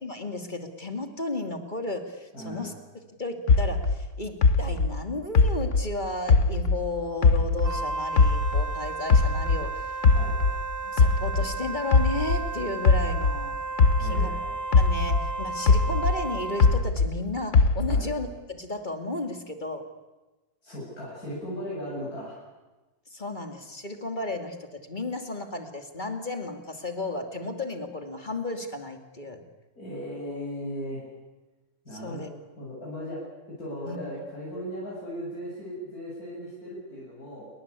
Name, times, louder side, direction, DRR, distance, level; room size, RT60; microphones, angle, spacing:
voice 1, 0.0-2.7 3.2-9.9 10.8-13.6 14.0-14.4 14.8-19.9 23.1-29.4 31.9-32.3 33.8-34.0, left 2 dB, 30° left, 6 dB, 2.9 m, -34 dB
voice 2, 2.3-2.8 10.1-10.3 14.0-14.5 17.9-18.1 20.6-22.4 29.8-31.0 31.9-32.3 32.6-33.2 33.6-37.4, equal, 85° left, -6 dB, 8.6 m, -37 dB
sound 1, 3.5-6.9 7.2-9.7 10.0-14.4 14.7-17.2 17.5-18.2, left 4 dB, 55° left, 1.5 m, -21 dB
Wind instrument woodwind instrument, 7.6-16.9, right 3 dB, 45° right, 1.4 m, -34 dB
30.0 x 22.5 x 8.5 m, 1.1 s
omnidirectional pair, 1.5 m